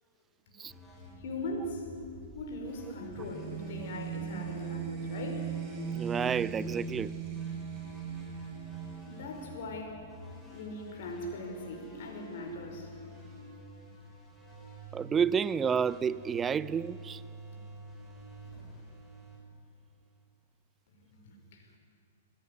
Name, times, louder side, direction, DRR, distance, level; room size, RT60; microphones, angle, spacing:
sound 1, 0.7-20.2, equal, 10° left, 6.8 m, -50 dB
voice 1, 1.2-1.9 2.3-5.6 9.0-10.1 10.5-12.9 20.9-21.8, left 1 dB, 55° left, 5.4 m, -40 dB
sound 2, 3.1-9.8, right 6 dB, 35° right, 5.1 m, -39 dB
voice 2, 5.9-7.2 14.9-17.2, right 7 dB, 20° right, 0.5 m, -30 dB
22.0 x 16.5 x 9.8 m
hypercardioid pair, 110°, 0 cm